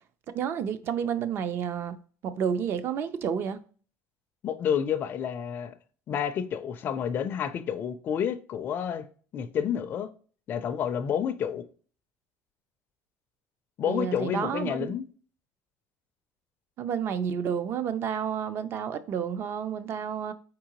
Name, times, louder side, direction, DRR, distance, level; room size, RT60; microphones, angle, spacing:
voice 1, 0.3-1.9 2.2-3.6 13.9-14.9 16.8-20.3, right 7 dB, 45° right, 0.4 m, -30 dB
voice 2, 4.4-5.7 6.1-9.1 9.3-10.1 10.5-11.7 13.8-15.1, left 8 dB, 35° left, 0.4 m, -29 dB
4.7 x 3.7 x 2.9 m
cardioid pair, 145°, 6 cm